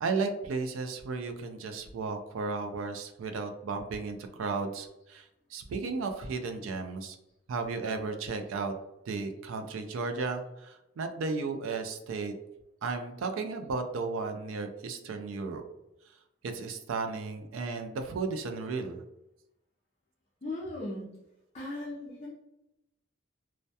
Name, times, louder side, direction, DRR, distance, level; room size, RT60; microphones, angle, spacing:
voice 1, 0.0-5.3 5.5-7.2 7.5-8.7 9.1-12.3 12.8-15.6 16.4-19.0, right 4 dB, 90° right, 6 dB, 0.3 m, -34 dB
voice 2, 20.4-21.1 21.5-22.3, left 1 dB, 30° left, -5 dB, 0.4 m, -37 dB
2.2 x 2.1 x 2.7 m, 0.88 s
head